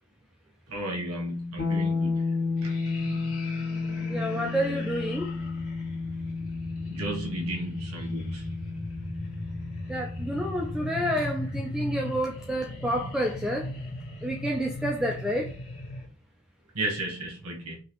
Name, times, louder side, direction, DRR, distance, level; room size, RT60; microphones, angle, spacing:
voice 1, 0.7-2.3 2.6-2.8 6.9-8.5 16.7-17.8, right 1 dB, 85° right, 1.1 m, -33 dB
sound 1, 1.6-11.4, left 4 dB, 45° left, 1.2 m, -32 dB
sound 2, 2.6-16.1, left 1 dB, 85° left, 1.4 m, -38 dB
voice 2, 4.1-5.3 9.9-13.7 14.2-15.5, equal, 5° right, 0.4 m, -29 dB
3.9 x 2.8 x 3.0 m
head